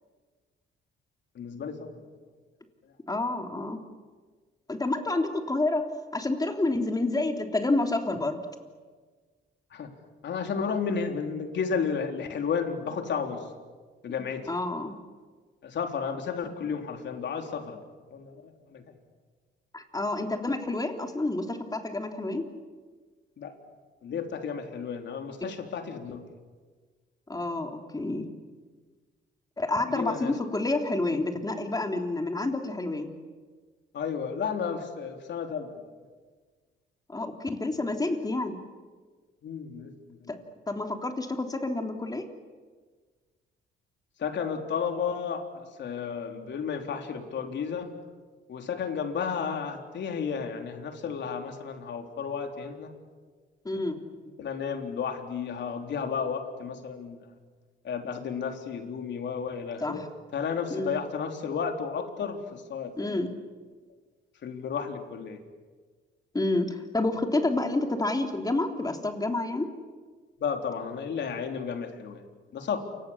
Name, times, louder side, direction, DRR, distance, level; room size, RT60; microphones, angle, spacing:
voice 1, 1.4-2.0 9.7-9.9 10.2-13.4 14.0-14.5 15.6-17.8 18.1-18.8 23.4-23.5 24.0-26.2 29.9-30.3 33.9-35.9 39.4-40.3 44.2-47.9 48.5-52.9 54.4-57.3 57.8-60.0 60.3-63.2 64.4-65.4 70.4-72.2 72.5-72.8, left 6 dB, 65° left, 4 dB, 3.7 m, -32 dB
voice 2, 3.1-3.8 4.7-5.9 6.1-8.4 14.5-14.9 19.7-22.4 27.3-28.3 29.6-33.1 37.1-38.6 40.3-40.4 40.7-42.3 53.6-54.0 59.8-60.0 60.7-60.9 63.0-63.3 66.3-69.7, left 2 dB, 20° left, 4 dB, 3.3 m, -29 dB
28.5 x 25.0 x 7.3 m, 1.5 s
cardioid pair, 90°, 20 cm